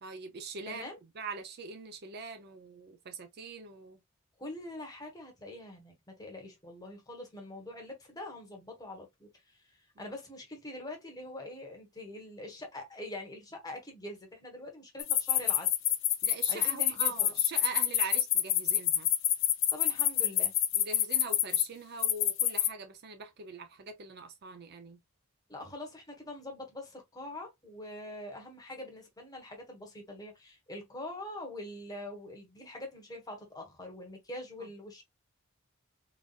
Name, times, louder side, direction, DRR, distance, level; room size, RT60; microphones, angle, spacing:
voice 1, 0.0-0.8 1.2-4.0 10.0-10.1 16.2-19.1 20.7-25.0, right 4 dB, 50° right, 0.5 m, -43 dB
voice 2, 0.7-1.0 4.4-15.7 16.5-17.3 19.7-20.5 25.5-35.0, left 1 dB, 15° left, 1.0 m, -44 dB
sound 1, 15.0-21.6 22.0-22.7, left 11 dB, 60° left, 0.5 m, -26 dB
3.9 x 2.4 x 2.3 m
head